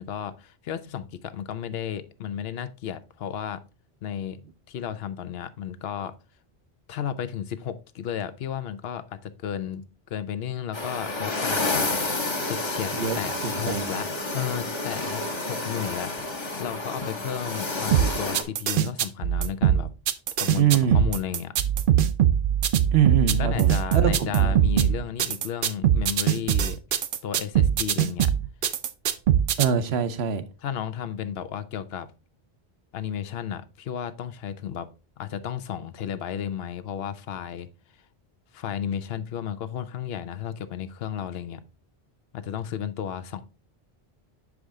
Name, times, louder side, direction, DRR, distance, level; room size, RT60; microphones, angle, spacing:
voice 1, 0.0-3.6 4.0-6.1 6.9-12.0 12.4-14.1 14.3-19.9 20.4-20.7 20.9-21.5 23.4-26.8 27.2-28.3 30.6-32.1 32.9-34.9 35.2-37.7 38.5-41.6 42.3-43.4, left 9 dB, 75° left, 0.8 m, -33 dB
sound 1, 10.7-18.4, left 2 dB, 30° left, 0.8 m, -30 dB
voice 2, 13.4-13.9 20.6-21.0 22.9-24.6 29.6-30.4, right 8 dB, 90° right, 1.0 m, -24 dB
sound 2, 17.9-29.6, right 10 dB, 60° right, 0.7 m, -22 dB
6.5 x 4.8 x 3.5 m
omnidirectional pair, 1.0 m